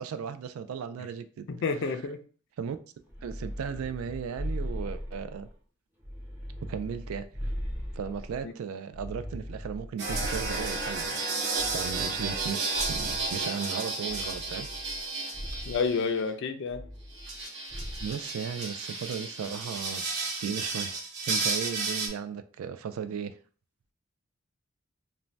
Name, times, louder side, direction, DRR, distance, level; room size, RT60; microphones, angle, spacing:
voice 1, 0.0-1.5 2.6-2.8 3.2-5.5 6.6-7.5 7.9-14.7 18.0-20.0 20.4-23.3, right 7 dB, 90° right, 0.3 m, -36 dB
voice 2, 1.5-2.2 8.4-8.5 15.7-16.8, left 5 dB, 60° left, 0.4 m, -29 dB
sound 1, 3.1-5.5 6.0-8.4 8.9-11.1 11.6-13.4 14.1-15.0 15.3-15.8 16.7-17.4 17.7-18.2, equal, 10° right, 0.6 m, -38 dB
sound 2, 10.0-16.1 17.1-22.1, right 3 dB, 55° right, 0.7 m, -33 dB
2.6 x 2.1 x 3.1 m
head